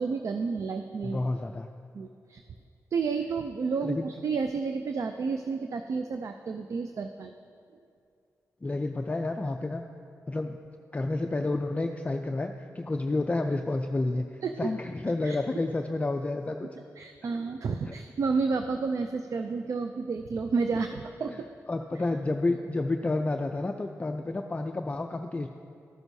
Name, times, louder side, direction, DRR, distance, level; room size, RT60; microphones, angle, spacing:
voice 1, 0.0-1.2 1.9-2.4 2.9-7.3 14.4-14.7 15.2-15.4 17.0-21.5, right 4 dB, 60° right, 7 dB, 0.4 m, -31 dB
voice 2, 1.0-1.7 3.8-4.1 8.6-9.8 10.3-10.6 10.9-16.7 17.9-18.0 21.3-21.4 21.7-25.5, left 2 dB, 25° left, 5 dB, 0.3 m, -30 dB
13.0 x 6.1 x 2.7 m, 2.4 s
cardioid pair, 80°, 6 cm